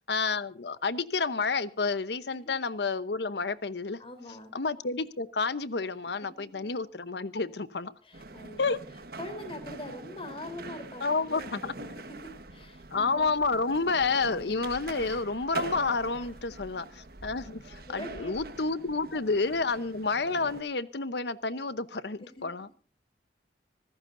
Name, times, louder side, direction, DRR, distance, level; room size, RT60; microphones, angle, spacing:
voice 1, 0.1-4.0 4.5-7.9 8.6-8.8 11.0-11.7 12.9-22.7, left 4 dB, 65° left, 0.9 m, -30 dB
voice 2, 4.0-4.5 8.0-8.8 9.2-13.3 17.9-18.4 19.1-19.2 22.4-22.5, left 1 dB, 30° left, 3.7 m, -43 dB
sound 1, 8.1-20.6, right 2 dB, 55° right, 1.4 m, -44 dB
25.5 x 15.0 x 2.6 m
head